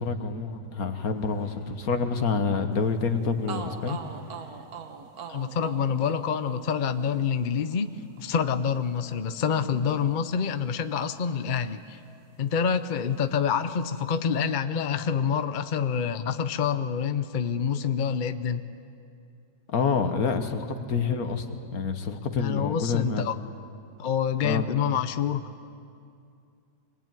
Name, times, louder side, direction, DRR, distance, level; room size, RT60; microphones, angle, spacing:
voice 1, 0.0-4.0 19.7-21.5 21.7-23.3 24.4-24.7, left 5 dB, 65° left, 7 dB, 1.8 m, -27 dB
sound 1, 1.0-2.3 2.6-4.7 5.1-6.4 6.8-8.7 9.2-10.4, left 1 dB, 15° left, 2.1 m, -52 dB
sound 2, 3.1-3.2 3.5-11.3 11.6-12.8, right 6 dB, 70° right, 1.6 m, -44 dB
voice 2, 5.3-12.0 12.4-18.6 22.3-23.4 24.0-25.7, left 7 dB, 45° left, 10 dB, 0.6 m, -27 dB
24.0 x 20.0 x 9.1 m, 2.5 s
omnidirectional pair, 1.7 m